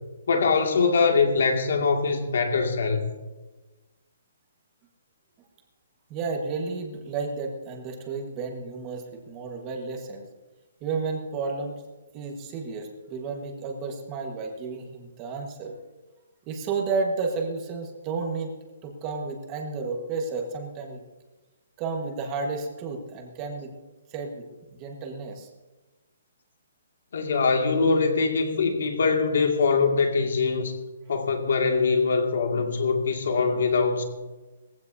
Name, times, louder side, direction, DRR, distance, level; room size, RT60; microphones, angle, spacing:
voice 1, 0.3-3.0 27.1-30.7 31.1-34.0, left 4 dB, 60° left, 3 dB, 2.1 m, -23 dB
voice 2, 6.1-10.3 10.8-11.8 12.1-15.8 16.5-18.5 18.8-21.0 21.8-23.7 24.1-25.5, right 4 dB, 15° right, 2 dB, 1.4 m, -32 dB
20.5 x 15.5 x 2.7 m, 1.2 s
hypercardioid pair, 180°, 0 cm